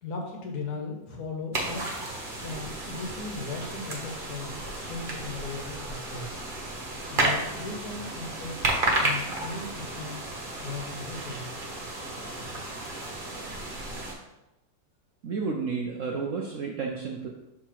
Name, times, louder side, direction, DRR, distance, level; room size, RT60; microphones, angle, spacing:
voice 1, 0.0-2.1 2.4-6.4 7.1-8.5 9.0-10.2 10.6-11.6, left 3 dB, 60° left, 0 dB, 1.7 m, -37 dB
sound 1, 1.5-14.1, right 2 dB, 35° right, 1.1 m, -32 dB
voice 2, 15.2-17.3, right 5 dB, 65° right, 0 dB, 0.7 m, -31 dB
6.6 x 3.6 x 4.5 m, 0.94 s
omnidirectional pair, 2.0 m